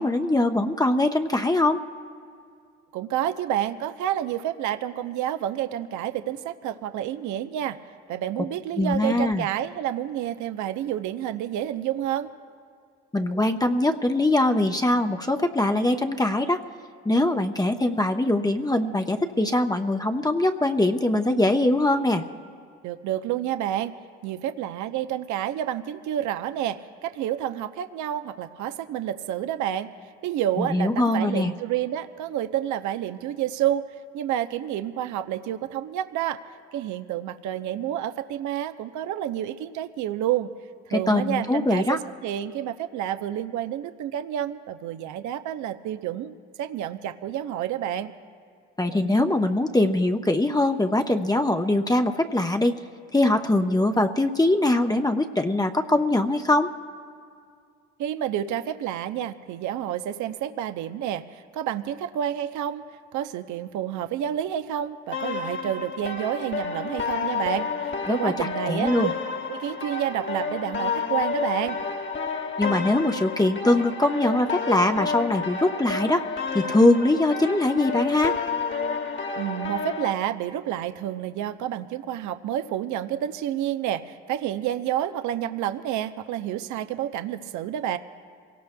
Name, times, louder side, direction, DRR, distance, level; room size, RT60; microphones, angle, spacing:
voice 1, 0.0-1.8 8.8-9.4 13.1-16.6 17.0-22.2 30.6-31.5 40.9-42.0 48.8-52.8 53.1-56.7 68.1-69.1 72.6-76.2 76.5-78.3, left 1 dB, 10° left, 4 dB, 1.0 m, -22 dB
voice 2, 2.9-7.8 8.1-12.3 22.8-23.9 24.2-29.9 30.2-36.4 36.7-40.5 40.9-48.1 58.0-62.8 63.1-69.1 69.5-71.8 79.4-88.0, right 11 dB, 60° right, 10 dB, 0.8 m, -29 dB
sound 1, 65.1-80.1, left 5 dB, 35° left, 1.5 m, -30 dB
28.0 x 17.5 x 2.3 m, 2.2 s
hypercardioid pair, 50°, 33 cm